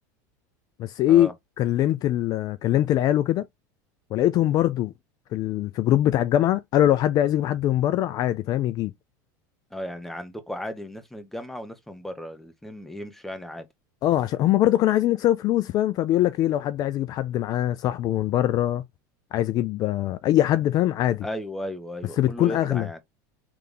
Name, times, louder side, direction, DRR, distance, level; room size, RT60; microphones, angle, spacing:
voice 1, 0.8-1.3 1.6-3.5 4.1-4.9 5.3-8.9 14.0-18.8 19.3-21.3 22.2-22.9, left 13 dB, 40° left, 0.4 m, -22 dB
voice 2, 9.7-13.7 21.2-23.0, left 1 dB, 5° left, 0.8 m, -35 dB
3.4 x 3.1 x 3.7 m
supercardioid pair, 125°, 10 cm